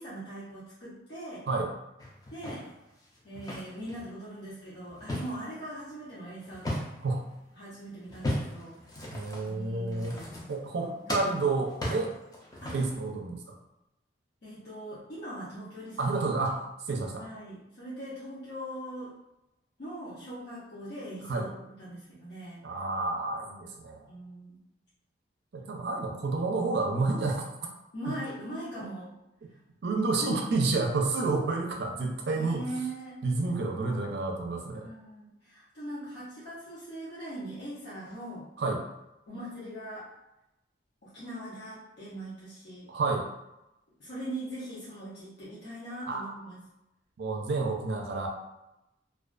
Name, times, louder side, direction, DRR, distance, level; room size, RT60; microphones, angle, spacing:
voice 1, 0.0-1.5 2.3-2.7 3.2-6.7 7.6-8.8 9.5-10.3 10.8-11.4 12.6-12.7 14.4-16.2 17.2-19.1 19.8-22.6 24.1-24.6 27.9-29.1 29.8-30.1 32.3-33.2 34.7-38.5 39.3-40.1 41.0-42.9 44.0-46.6, right 1 dB, 65° left, -10 dB, 0.6 m, -41 dB
sound 1, 2.0-4.1 4.5-7.2 8.0-10.8 11.1-13.1, left 1 dB, 20° left, 0.4 m, -37 dB
voice 2, 9.1-10.2 10.5-12.1 12.7-13.4 16.0-16.6 16.9-17.2 21.3-21.5 22.6-24.0 25.5-27.5 28.1-28.2 29.8-32.7 33.2-34.9 38.6-38.8 42.9-43.3 46.1-46.4 47.2-48.3, right 3 dB, 65° right, 2 dB, 0.4 m, -29 dB
2.3 x 2.2 x 2.4 m, 0.91 s
head